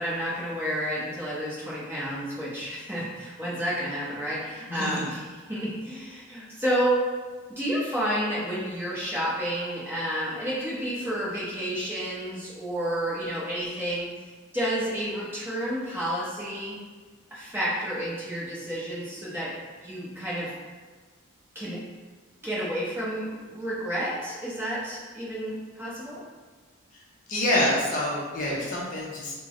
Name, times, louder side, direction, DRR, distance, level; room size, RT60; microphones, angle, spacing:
voice 1, 0.0-5.2 5.5-7.0 7.5-16.8 17.3-19.5 19.8-20.5 21.5-21.8 22.4-26.2, equal, 10° right, -8 dB, 0.7 m, -30 dB
voice 2, 4.7-5.1 27.3-29.3, left 1 dB, 35° left, -5 dB, 0.5 m, -26 dB
3.2 x 2.0 x 3.6 m, 1.4 s
head